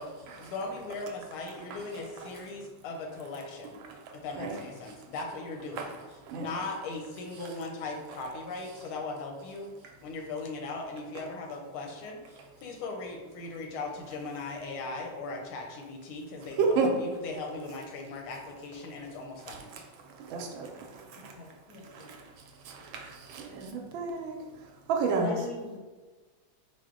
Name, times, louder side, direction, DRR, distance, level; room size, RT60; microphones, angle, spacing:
voice 1, 0.4-3.8 4.1-6.0 6.3-9.7 10.0-19.7, left 3 dB, 90° left, 2 dB, 1.5 m, -38 dB
voice 2, 3.9-4.6 4.9-5.1 5.7-5.9 6.2-6.5 7.4-7.5 9.8-9.9 16.4-16.9 19.4-21.6 21.8-25.3, right 5 dB, 75° right, 2 dB, 1.2 m, -33 dB
voice 3, 21.3-22.2 25.1-25.8, left 4 dB, 70° left, -4 dB, 0.9 m, -40 dB
4.7 x 2.1 x 3.6 m, 1.3 s
omnidirectional pair, 2.3 m